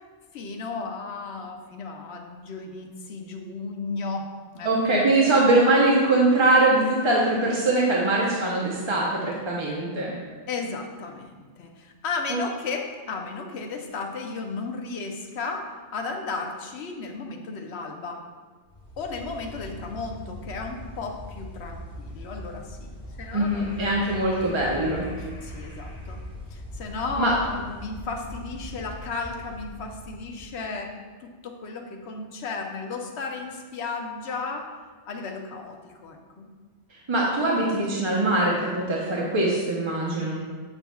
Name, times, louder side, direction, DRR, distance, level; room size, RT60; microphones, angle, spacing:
voice 1, 0.3-4.3 4.5-5.0 10.5-18.3 19.0-22.9 23.2-24.0 25.2-26.2 26.5-34.7 35.1-36.5, left 4 dB, 70° left, 3 dB, 0.9 m, -34 dB
voice 2, 4.6-10.1 12.3-12.4 23.3-25.1 27.2-27.3 37.1-40.4, right 2 dB, 30° right, -4 dB, 0.7 m, -22 dB
sound 1, 18.7-30.6, equal, 50° left, 1.6 m, -41 dB
8.3 x 5.7 x 2.3 m, 1.5 s
omnidirectional pair, 1.2 m